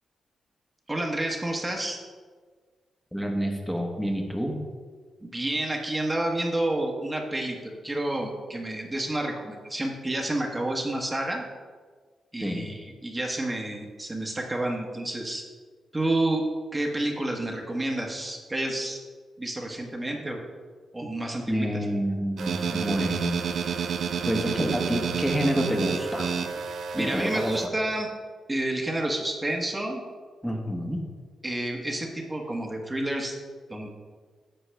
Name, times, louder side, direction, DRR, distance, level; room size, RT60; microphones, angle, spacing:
voice 1, 0.9-2.0 5.2-11.4 12.3-15.4 15.9-16.4 16.7-19.0 19.4-20.4 20.9-21.7 26.7-28.1 28.5-30.0 31.4-33.3 33.7-33.9, right 1 dB, 20° right, 1 dB, 1.3 m, -29 dB
voice 2, 3.1-4.6 12.4-12.7 21.5-23.4 24.2-26.3 27.0-27.9 30.4-31.1, equal, 5° left, 1 dB, 1.3 m, -28 dB
sound 1, 22.4-27.7, right 6 dB, 70° right, 0.6 m, -30 dB
10.0 x 6.9 x 3.4 m, 1.5 s
cardioid pair, 75°, 0 cm